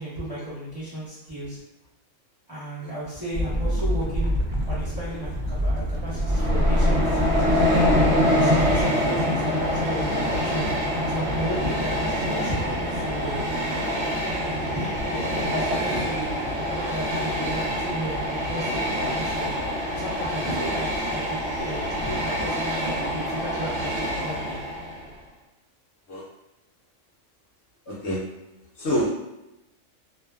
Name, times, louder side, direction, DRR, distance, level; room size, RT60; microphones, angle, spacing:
voice 1, 0.0-1.6 2.5-4.3 4.7-7.9 8.3-10.7 11.1-13.5 14.4-16.3 16.7-19.5 20.0-24.6, equal, 25° right, -11 dB, 0.6 m, -34 dB
sound 1, 3.3-8.8, equal, 85° right, 0.4 m, -25 dB
Train, 6.2-25.1, equal, 60° right, 0.8 m, -25 dB
voice 2, 27.9-28.4 28.8-29.1, equal, 65° left, -5 dB, 0.8 m, -27 dB
2.5 x 2.2 x 2.2 m, 0.92 s
omnidirectional pair, 1.4 m